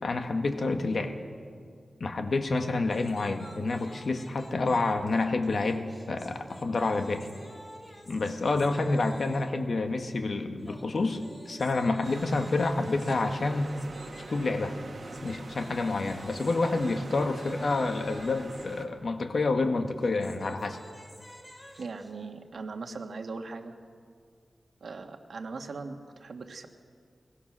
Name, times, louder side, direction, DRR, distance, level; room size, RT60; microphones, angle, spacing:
voice 1, 0.0-1.2 2.0-7.3 8.1-13.7 14.3-14.8 15.2-20.8, left 3 dB, 65° left, 6 dB, 1.6 m, -28 dB
sound 1, 2.8-9.6 10.6-18.7 19.9-22.1, equal, 20° left, 2.7 m, -50 dB
sound 2, 12.0-18.8, right 3 dB, 60° right, 1.8 m, -44 dB
voice 2, 21.8-23.8 24.8-26.7, right 4 dB, 80° right, 5 dB, 1.5 m, -39 dB
22.0 x 19.5 x 6.2 m, 2.2 s
wide cardioid pair, 85°, 0 cm